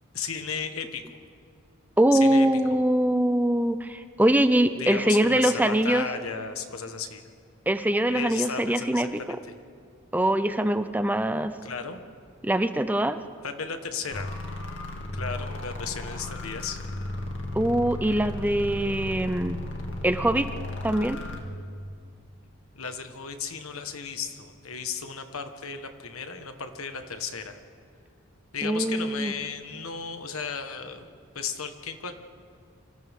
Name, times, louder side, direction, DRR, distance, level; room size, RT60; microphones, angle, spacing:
voice 1, 0.1-1.0 2.1-2.5 4.8-7.2 8.1-9.4 11.6-12.0 13.4-14.3 15.1-16.8 22.7-27.6 28.5-31.1 31.3-32.1, left 6 dB, 85° left, 7 dB, 1.5 m, -34 dB
voice 2, 2.0-6.1 7.7-9.4 10.1-11.5 12.4-13.2 17.5-19.6 20.0-20.5 20.8-21.2 28.6-29.3, right 1 dB, 10° right, 10 dB, 0.5 m, -23 dB
sound 1, 14.1-21.4, left 1 dB, 60° left, 2.4 m, -35 dB
29.0 x 25.5 x 3.7 m, 2.2 s
head